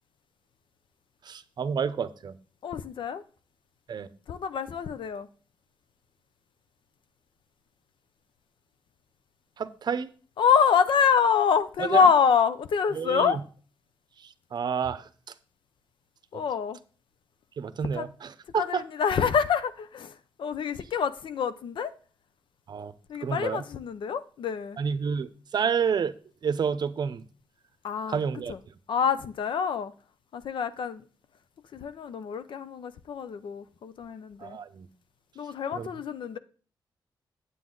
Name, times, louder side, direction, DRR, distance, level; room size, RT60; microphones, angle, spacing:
voice 1, 1.2-2.4 3.9-4.1 9.6-10.1 11.8-12.0 12.9-13.4 14.2-15.3 16.3-16.4 17.6-18.8 22.7-22.9 23.2-23.6 24.8-26.2 26.4-27.3 28.1-28.5 34.4-34.9 35.7-35.9, right 6 dB, 55° right, 0.7 m, -30 dB
voice 2, 2.6-3.2 4.3-5.3 10.4-13.4 16.3-16.8 17.9-18.1 18.6-21.9 23.1-24.8 27.8-28.2 28.5-28.6 28.9-29.9 30.3-31.1 31.7-34.6 35.4-36.4, left 6 dB, 75° left, 0.7 m, -26 dB
9.3 x 8.4 x 3.9 m
wide cardioid pair, 120°, 9 cm